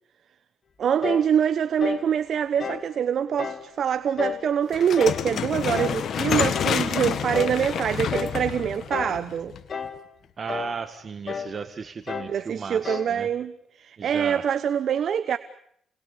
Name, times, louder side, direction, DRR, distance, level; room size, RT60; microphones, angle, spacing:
voice 1, 0.8-9.5 12.3-15.4, right 8 dB, 60° right, 1.0 m, -25 dB
sound 1, 1.0-1.3 1.8-2.1 2.6-2.9 3.4-3.7 4.2-4.5 4.9-5.3 5.7-6.0 6.5-6.8 7.3-7.6 8.1-8.4 8.9-9.2 9.7-10.0 10.5-10.8 11.3-11.6 12.1-12.4 12.8-13.2, left 6 dB, 45° left, 2.5 m, -32 dB
sound 2, 4.7-9.9, left 8 dB, 65° left, 1.9 m, -28 dB
voice 2, 10.4-13.3 14.0-14.5, right 5 dB, 40° right, 1.8 m, -35 dB
29.5 x 21.0 x 8.5 m
cardioid pair, 90°, 0 cm